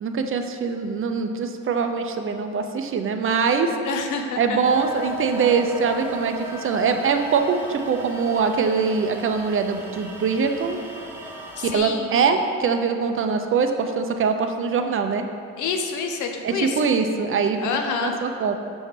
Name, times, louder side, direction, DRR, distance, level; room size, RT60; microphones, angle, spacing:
voice 1, 0.0-3.7 4.4-10.8 11.6-15.2 16.4-17.6 18.0-18.6, right 5 dB, 45° right, 6 dB, 0.5 m, -23 dB
voice 2, 3.8-4.6 11.6-12.1 15.6-16.7 17.6-18.2, left 5 dB, 75° left, 4 dB, 0.7 m, -27 dB
sound 1, 4.6-11.8, right 1 dB, 10° right, 0.8 m, -37 dB
6.1 x 3.3 x 5.0 m, 2.4 s
cardioid pair, 90°, 30 cm